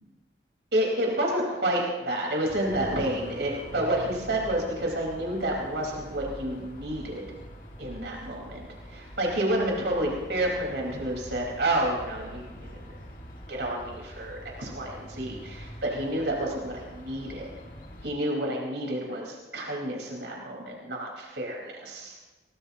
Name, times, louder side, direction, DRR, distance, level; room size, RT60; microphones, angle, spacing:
voice 1, 0.7-7.2 7.8-13.0 13.5-17.5 18.0-22.2, right 1 dB, 80° right, -1 dB, 4.6 m, -29 dB
sound 1, 2.4-18.1, equal, 50° left, 2.2 m, -44 dB
23.5 x 20.0 x 2.9 m, 1.2 s
head